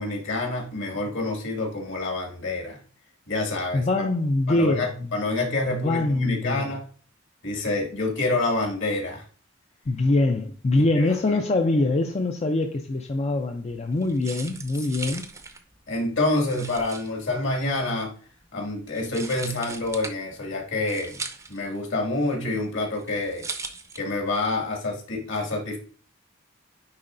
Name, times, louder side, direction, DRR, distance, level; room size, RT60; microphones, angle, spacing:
voice 1, 0.0-2.8 3.3-4.0 4.5-6.8 7.4-9.2 10.7-11.4 15.1-15.2 15.9-18.1 18.5-21.1 21.5-23.5 23.9-25.8, left 2 dB, 65° left, 2.1 m, -27 dB
voice 2, 3.7-5.1 5.8-6.8 9.9-15.2, left 2 dB, 30° left, 0.5 m, -24 dB
sound 1, 13.7-24.4, right 3 dB, 15° right, 0.6 m, -40 dB
9.6 x 3.9 x 2.6 m
head